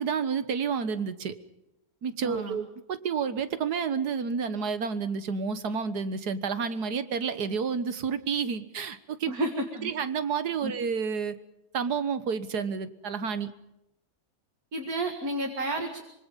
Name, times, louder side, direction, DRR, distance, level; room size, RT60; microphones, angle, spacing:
voice 1, 0.0-1.4 2.0-2.6 2.9-9.3 9.8-11.3 11.7-13.5, right 6 dB, 80° right, 12 dB, 1.9 m, -30 dB
voice 2, 2.2-2.7 9.3-9.9 10.6-10.7 14.7-16.0, right 1 dB, 65° right, 3 dB, 2.6 m, -31 dB
25.5 x 24.5 x 5.4 m, 0.87 s
omnidirectional pair, 1.7 m